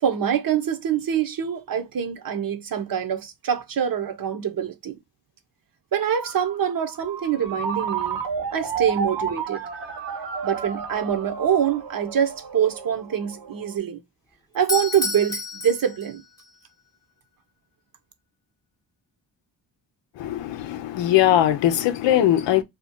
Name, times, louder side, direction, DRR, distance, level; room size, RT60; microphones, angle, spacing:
voice 1, 0.0-4.9 5.9-8.2 8.5-9.6 10.4-14.0 14.5-16.2, right 8 dB, 50° right, 0.8 m, -25 dB
Ringtone, 6.2-13.7, right 6 dB, 80° right, 1.3 m, -32 dB
Doorbell, 14.5-16.5, left 2 dB, 10° left, 0.7 m, -30 dB
voice 2, 20.2-22.6, left 12 dB, 85° left, 0.6 m, -20 dB
2.9 x 2.3 x 3.5 m
cardioid pair, 65°, 43 cm